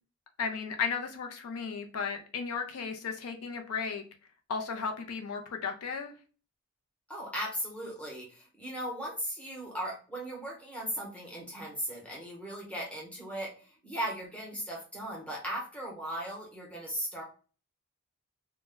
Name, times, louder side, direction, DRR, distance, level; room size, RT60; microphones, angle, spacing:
voice 1, 0.4-4.0 4.5-6.1, left 5 dB, 75° left, 4 dB, 0.4 m, -35 dB
voice 2, 7.1-17.2, right 1 dB, 5° left, -3 dB, 0.8 m, -37 dB
2.1 x 2.0 x 3.4 m, 0.37 s
head